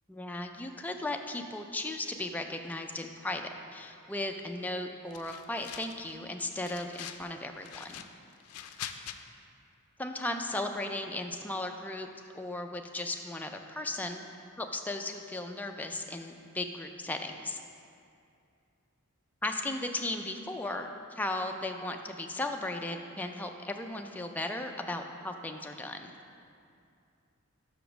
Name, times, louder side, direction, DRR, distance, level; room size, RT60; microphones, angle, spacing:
voice 1, 0.1-3.4 3.7-8.0 10.0-12.1 12.3-14.2 14.6-17.6 19.4-26.1, left 2 dB, 5° left, 4 dB, 0.3 m, -36 dB
sound 1, 5.1-6.1 6.5-7.3 7.6-9.2, left 10 dB, 80° left, 0.4 m, -44 dB
6.0 x 5.0 x 6.0 m, 2.5 s
head